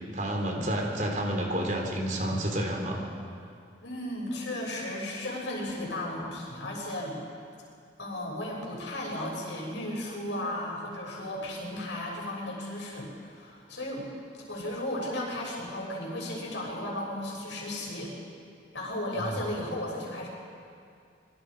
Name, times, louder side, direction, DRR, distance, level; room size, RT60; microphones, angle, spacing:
voice 1, 0.1-3.0 19.2-19.4, right 1 dB, 45° right, 0 dB, 4.0 m, -30 dB
voice 2, 3.8-7.2 8.0-14.0 14.5-18.1 18.7-20.3, left 1 dB, 80° left, -2 dB, 6.8 m, -35 dB
25.5 x 23.5 x 5.1 m, 2.4 s
head